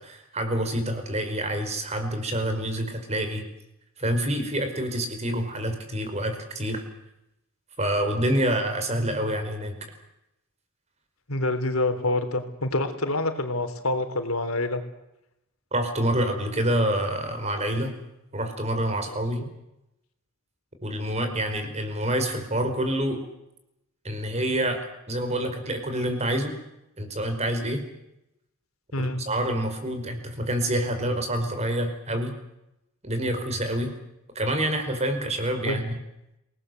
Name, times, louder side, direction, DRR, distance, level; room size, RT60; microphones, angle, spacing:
voice 1, 0.0-3.5 4.0-6.8 7.8-9.7 15.7-18.0 18.3-19.4 20.8-23.2 24.0-26.6 27.0-27.8 29.0-32.4 33.0-33.9 34.3-36.0, right 1 dB, 30° right, 7 dB, 5.0 m, -27 dB
voice 2, 11.3-14.8 19.1-19.5 28.9-29.2 35.7-35.8, left 2 dB, 85° left, 8 dB, 3.7 m, -27 dB
28.0 x 19.5 x 7.9 m, 0.88 s
head